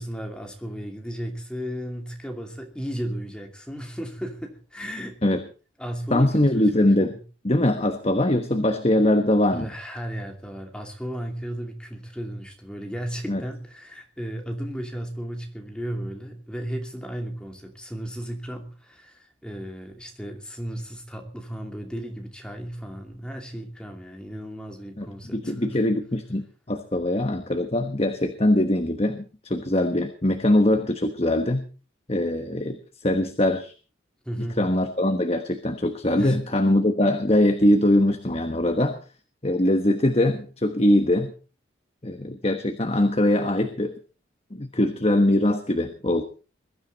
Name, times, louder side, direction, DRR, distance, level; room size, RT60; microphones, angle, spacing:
voice 1, 0.0-5.2 5.8-6.8 9.5-25.8 34.2-34.6 36.1-36.4, equal, 5° left, 2 dB, 2.7 m, -34 dB
voice 2, 6.1-7.2 7.4-9.7 13.3-13.4 25.0-25.1 25.3-31.6 32.1-33.7 34.6-39.0 39.4-41.3 42.0-43.9 44.5-46.2, left 1 dB, 30° left, 6 dB, 1.3 m, -22 dB
22.0 x 13.0 x 4.1 m, 0.36 s
head